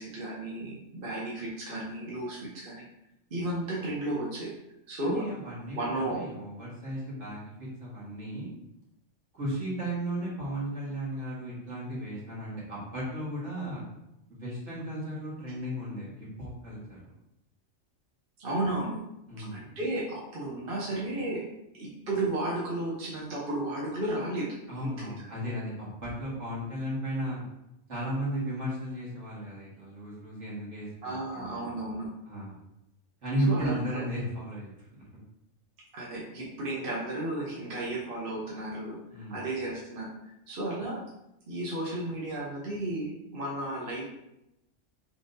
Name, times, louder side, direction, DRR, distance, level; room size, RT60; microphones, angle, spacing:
voice 1, 0.0-2.8 3.3-4.5 4.9-5.3 5.7-6.2 18.4-19.0 19.4-21.4 21.7-25.1 31.0-32.1 33.5-34.0 35.9-39.0 39.3-41.0 41.5-44.0, right 1 dB, 50° right, -4 dB, 1.0 m, -33 dB
voice 2, 5.0-8.5 9.3-13.8 14.3-17.0 19.3-19.6 24.7-27.4 27.9-31.7 32.3-32.5 33.2-34.9 39.1-39.5, right 1 dB, 65° right, -7 dB, 2.0 m, -35 dB
5.7 x 3.4 x 2.6 m, 0.86 s
omnidirectional pair, 1.3 m